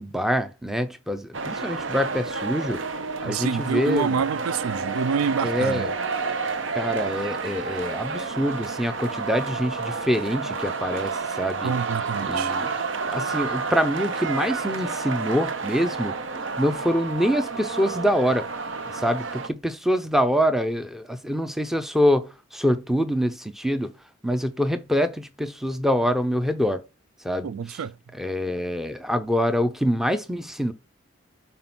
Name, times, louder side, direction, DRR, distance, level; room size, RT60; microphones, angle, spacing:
voice 1, 0.0-2.8 3.2-4.2 5.4-5.9 6.7-11.7 12.3-12.7 13.0-16.2 16.6-18.5 18.9-23.9 24.2-26.8 27.2-27.8 28.1-30.7, equal, ahead, 0.5 m, -25 dB
sound 1, 1.3-19.5, right 4 dB, 65° right, 0.7 m, -30 dB
voice 2, 3.2-5.9 11.6-12.5 27.4-27.9, right 6 dB, 85° right, 0.3 m, -27 dB
5.5 x 4.4 x 6.0 m
head